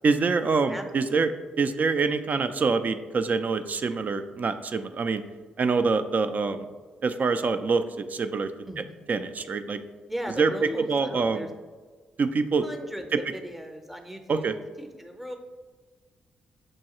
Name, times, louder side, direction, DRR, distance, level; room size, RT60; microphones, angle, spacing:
voice 1, 0.0-5.2 5.6-6.7 7.0-8.5 9.1-9.8 10.4-11.5 12.2-12.6 13.1-13.2 14.3-14.5, right 4 dB, 45° right, 9 dB, 0.4 m, -25 dB
voice 2, 0.7-1.2 8.6-9.0 10.1-11.5 12.6-15.3, equal, 5° right, 5 dB, 0.7 m, -38 dB
6.3 x 2.2 x 2.9 m, 1.4 s
hypercardioid pair, 45°, 4 cm